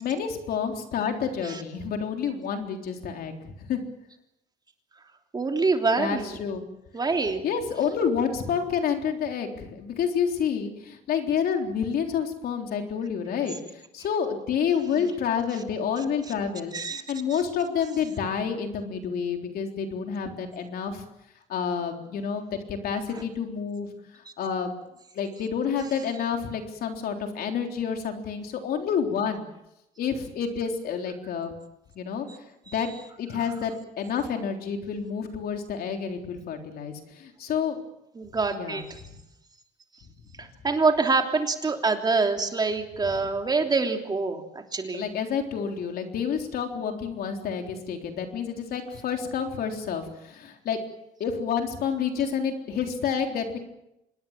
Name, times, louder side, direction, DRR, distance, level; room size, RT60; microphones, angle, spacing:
voice 1, 0.0-3.8 6.0-6.6 7.4-21.0 21.5-23.9 24.1-24.7 25.1-29.5 30.0-31.5 32.0-32.3 32.7-32.9 33.2-37.8 38.5-39.2 44.9-50.8 51.2-53.6, left 7 dB, 65° left, 4 dB, 3.7 m, -29 dB
voice 2, 5.3-6.4 6.9-7.4 14.9-15.1 16.7-17.0 17.3-17.4 38.1-39.0 40.4-45.1, right 4 dB, 25° right, 4 dB, 3.2 m, -26 dB
26.0 x 20.0 x 7.4 m, 0.88 s
cardioid pair, 110°, 17 cm